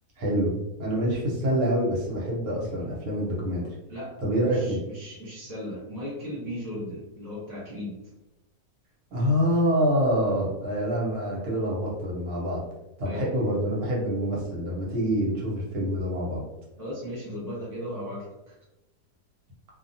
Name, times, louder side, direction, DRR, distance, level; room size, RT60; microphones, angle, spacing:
voice 1, 0.2-3.7 4.2-4.8 9.1-12.6 13.0-16.4, equal, 70° right, -3 dB, 1.3 m, -26 dB
voice 2, 4.4-8.0 13.0-13.5 16.8-18.6, equal, 20° left, -7 dB, 0.5 m, -37 dB
2.7 x 2.3 x 2.6 m, 0.94 s
omnidirectional pair, 1.7 m